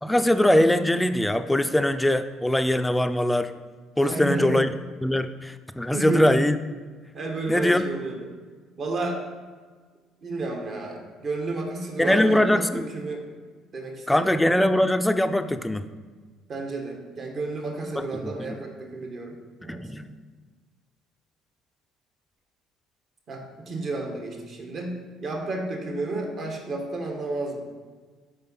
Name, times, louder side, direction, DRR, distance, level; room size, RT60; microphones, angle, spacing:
voice 1, 0.0-3.5 4.0-4.7 5.0-6.6 7.5-7.8 12.0-12.9 14.1-15.9 18.2-18.6 19.6-20.1, left 1 dB, 5° left, 10 dB, 0.4 m, -22 dB
voice 2, 4.0-4.7 5.9-6.2 7.1-8.3 8.8-9.2 10.2-13.2 13.7-14.3 16.5-19.9 23.3-27.6, right 2 dB, 50° right, 2 dB, 1.2 m, -31 dB
5.2 x 4.6 x 4.1 m, 1.5 s
hypercardioid pair, 65°, 0 cm